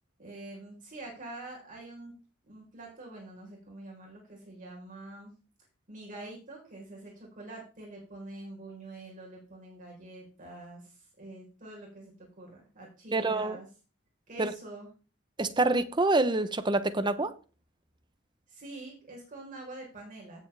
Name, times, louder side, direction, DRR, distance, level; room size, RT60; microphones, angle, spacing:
voice 1, 0.2-2.1 2.5-5.3 5.9-13.7 14.3-14.9 18.5-20.4, right 2 dB, 40° right, 4.1 m, -45 dB
voice 2, 13.1-13.6 14.4-14.5 15.4-17.3, right 2 dB, 20° right, 0.8 m, -26 dB
16.5 x 7.1 x 3.4 m
head